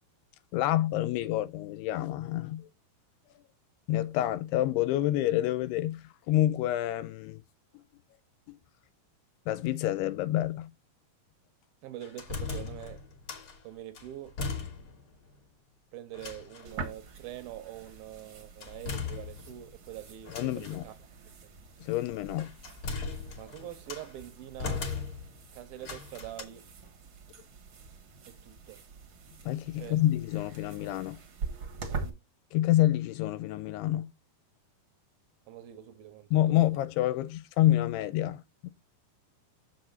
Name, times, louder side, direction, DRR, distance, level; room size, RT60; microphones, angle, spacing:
voice 1, 0.5-2.7 3.9-7.4 8.5-8.6 9.5-10.7 20.3-20.8 21.8-22.6 29.4-31.2 32.5-34.1 36.3-38.7, left 14 dB, 85° left, 2.6 m, -28 dB
voice 2, 11.8-13.1 13.6-14.4 15.9-20.9 21.4-21.5 23.4-24.9 25.5-26.7 28.3-28.8 29.8-30.0 31.9-32.2 35.5-36.8, right 13 dB, 80° right, 2.3 m, -44 dB
sound 1, 12.0-13.6 13.9-15.1 15.4-15.5 16.1-16.8 18.6-19.7 20.2-20.8 22.0-24.1 24.6-25.4 25.8-26.4, left 5 dB, 45° left, 1.9 m, -38 dB
sound 2, 16.6-32.1, right 4 dB, 60° right, 1.3 m, -44 dB
7.0 x 5.9 x 4.0 m
omnidirectional pair, 4.7 m